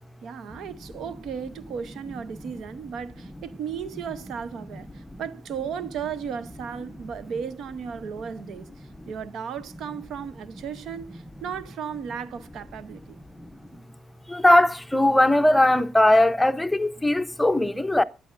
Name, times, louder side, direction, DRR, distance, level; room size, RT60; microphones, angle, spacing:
voice 1, 0.2-13.2, right 7 dB, 75° right, 0.7 m, -35 dB
voice 2, 14.3-18.0, left 1 dB, 5° left, 0.7 m, -19 dB
24.5 x 9.1 x 2.5 m
cardioid pair, 90°, 0 cm